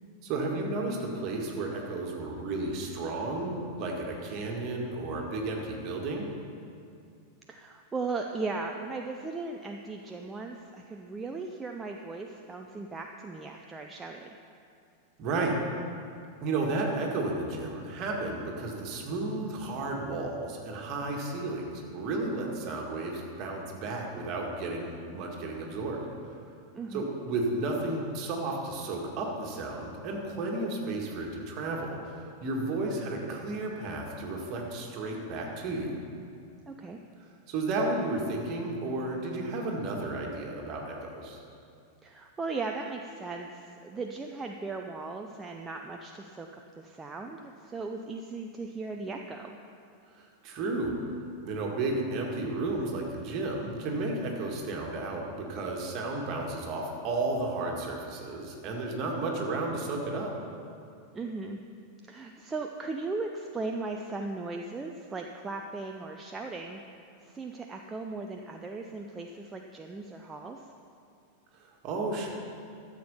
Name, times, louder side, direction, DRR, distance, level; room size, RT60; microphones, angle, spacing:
voice 1, 0.2-6.3 15.2-15.6 16.4-26.1 26.9-36.0 37.5-41.4 50.2-50.9 51.4-60.3 71.6-72.3, right 2 dB, 40° right, 0 dB, 2.0 m, -33 dB
voice 2, 7.5-14.3 26.7-27.0 36.7-37.0 42.0-49.6 61.1-61.6 62.0-70.7, right 3 dB, 15° right, 3 dB, 0.6 m, -37 dB
12.5 x 7.4 x 5.7 m, 2.5 s
figure-of-eight pair, 90°, 0 cm